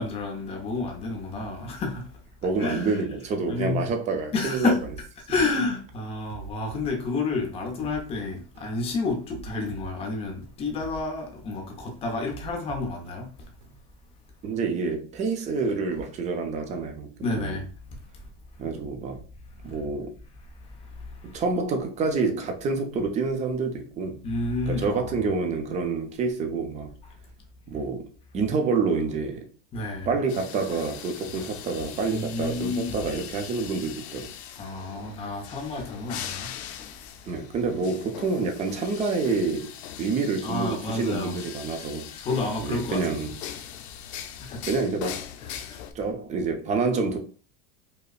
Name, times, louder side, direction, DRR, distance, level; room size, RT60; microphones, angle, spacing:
voice 1, 0.0-2.1 2.6-3.0 3.5-3.9 4.3-4.8 5.3-13.3 17.2-17.7 21.1-21.4 24.2-25.1 29.7-30.1 32.0-33.0 34.6-36.6 40.4-41.3 42.2-43.1 44.4-44.7 45.4-45.8, left 3 dB, 20° left, 0.6 m, -30 dB
voice 2, 2.4-4.7 14.4-17.6 18.6-19.2 19.6-20.1 21.3-24.2 24.7-26.9 27.7-28.1 28.3-29.5 30.1-34.3 37.3-39.7 40.0-42.1 42.6-43.3 44.6-45.2 45.9-47.2, right 4 dB, 20° right, 0.5 m, -27 dB
sound 1, 4.8-5.0 5.5-5.7 6.3-8.0 8.5-8.7 9.3-11.0 11.5-11.7 12.3-13.8, right 7 dB, 80° right, 1.1 m, -44 dB
sound 2, 30.3-45.9, left 9 dB, 85° left, 0.6 m, -40 dB
5.1 x 2.1 x 2.4 m
supercardioid pair, 155°, 32 cm